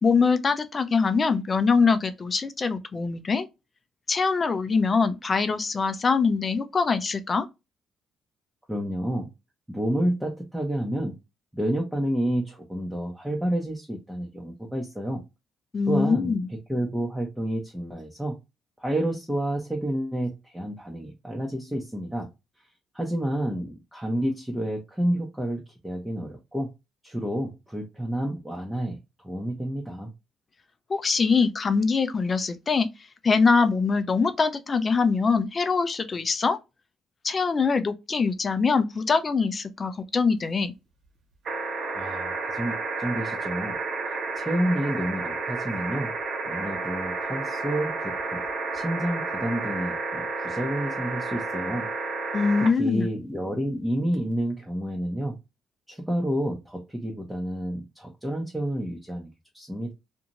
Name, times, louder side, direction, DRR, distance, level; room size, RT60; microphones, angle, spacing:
voice 1, 0.0-3.5 4.1-7.5 15.7-16.4 30.9-32.9 33.2-36.6 37.2-40.7 52.3-53.1, left 4 dB, 35° left, 0.5 m, -23 dB
voice 2, 8.7-9.3 9.7-11.2 11.5-15.2 15.9-18.4 18.8-22.3 22.9-26.7 27.0-30.1 41.9-43.8 44.1-46.1 46.4-48.4 48.7-51.9 52.6-55.4 55.9-59.9, right 1 dB, 5° right, 0.8 m, -29 dB
sound 1, 41.4-52.7 54.1-54.2, right 3 dB, 60° right, 0.9 m, -31 dB
2.6 x 2.4 x 2.9 m
cardioid pair, 90°, 0 cm